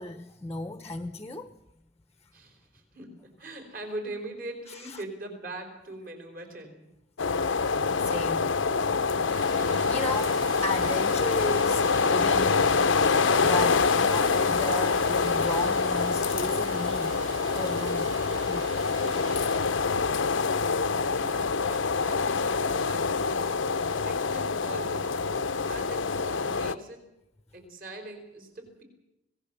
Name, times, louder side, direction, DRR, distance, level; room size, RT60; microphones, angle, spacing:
voice 1, 0.0-1.5 4.7-5.0 7.7-8.5 9.1-9.3 9.9-12.9 13.4-17.2 17.5-18.1 18.5-18.7, left 2 dB, 15° left, 0.9 m, -35 dB
voice 2, 2.3-3.1 3.4-6.8 19.0-19.4 21.0-23.6 24.0-25.3 25.6-27.0 27.5-28.8, right 1 dB, 45° right, 4.5 m, -42 dB
sound 1, 7.2-26.8, left 4 dB, 75° left, 0.8 m, -26 dB
Stream, 9.3-19.6, right 3 dB, 85° right, 5.9 m, -45 dB
25.0 x 18.0 x 7.0 m
head